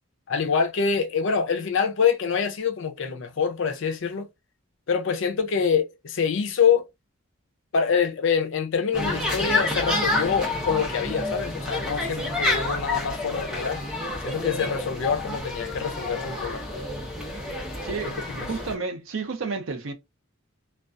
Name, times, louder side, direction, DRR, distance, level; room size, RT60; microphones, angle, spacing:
voice 1, 0.3-4.3 4.9-6.9 7.7-13.8 14.2-16.6 18.3-18.5, left 6 dB, 60° left, 0.5 m, -25 dB
sound 1, 8.9-18.7, left 2 dB, 5° right, 0.6 m, -29 dB
voice 2, 17.8-18.2 18.5-19.9, right 4 dB, 65° right, 0.6 m, -31 dB
2.3 x 2.2 x 2.4 m
head